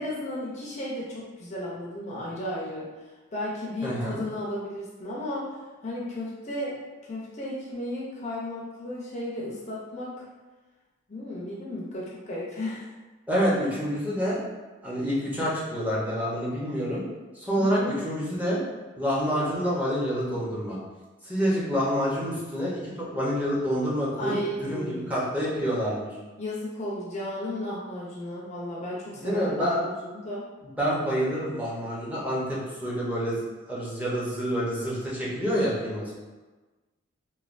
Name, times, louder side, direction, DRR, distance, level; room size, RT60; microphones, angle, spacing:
voice 1, 0.0-2.9 3.3-5.5 5.8-6.8 7.0-10.1 11.1-12.8 17.8-17.9 24.2-25.1 26.4-30.5, left 1 dB, 35° left, -5 dB, 0.5 m, -34 dB
voice 2, 3.8-4.2 13.3-14.4 14.8-17.0 17.3-18.6 19.0-20.8 21.2-26.1 29.2-29.8 30.8-33.4 33.7-36.2, equal, 10° right, -7 dB, 0.7 m, -27 dB
3.1 x 2.2 x 2.4 m, 1.2 s
head